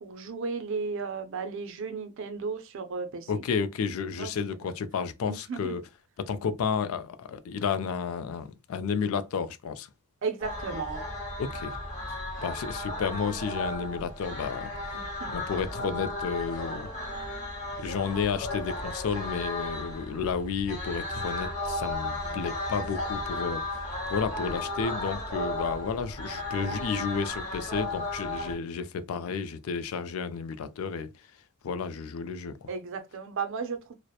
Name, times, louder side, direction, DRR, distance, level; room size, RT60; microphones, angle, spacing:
voice 1, 0.0-3.4 4.2-4.3 5.3-5.8 10.2-11.0 14.9-15.3 22.2-22.4 32.7-33.9, right 5 dB, 60° right, 0.4 m, -34 dB
voice 2, 3.3-5.8 6.2-9.9 11.4-11.8 12.4-14.7 15.3-16.9 17.8-23.6 24.1-31.1 31.6-32.7, left 6 dB, 70° left, 0.3 m, -31 dB
sound 1, 10.4-28.5, left 2 dB, 35° left, 1.2 m, -35 dB
2.7 x 2.0 x 2.2 m
head